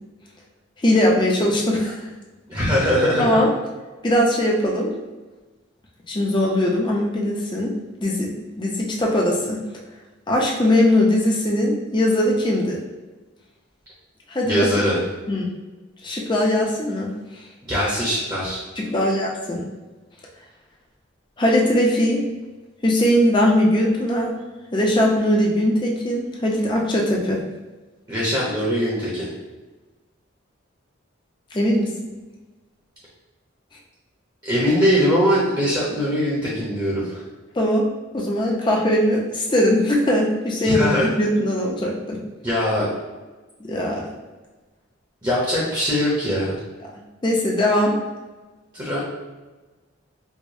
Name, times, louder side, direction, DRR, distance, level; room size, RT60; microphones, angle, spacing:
voice 1, 0.8-2.0 3.2-3.5 4.0-4.9 6.1-9.6 10.3-12.8 14.3-14.7 15.3-15.5 16.0-17.1 18.8-19.6 21.4-22.3 22.8-24.4 24.7-27.4 31.5-31.9 37.6-42.2 43.6-44.1 47.2-48.0, left 1 dB, 25° left, -2 dB, 0.5 m, -20 dB
voice 2, 2.5-3.3 14.4-15.0 17.6-18.6 28.1-29.3 34.4-37.2 40.6-41.1 42.4-42.9 45.2-46.6 48.7-49.0, equal, 20° right, -7 dB, 0.8 m, -21 dB
4.7 x 2.1 x 2.6 m, 1.2 s
head